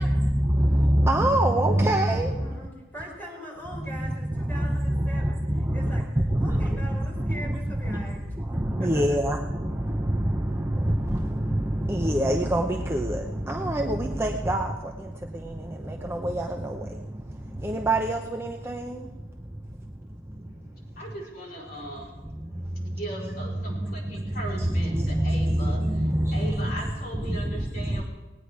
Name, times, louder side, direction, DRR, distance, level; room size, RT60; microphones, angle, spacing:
voice 1, 0.0-2.6 3.7-20.8 21.9-26.8 27.1-28.0, right 1 dB, 15° right, 1 dB, 0.8 m, -26 dB
voice 2, 2.2-5.4 5.7-6.0 6.4-8.2 8.8-9.2, equal, 10° left, -5 dB, 5.6 m, -41 dB
voice 3, 20.3-25.8 26.3-28.0, right 1 dB, 55° left, -5 dB, 4.8 m, -39 dB
19.5 x 9.8 x 4.9 m, 1.2 s
head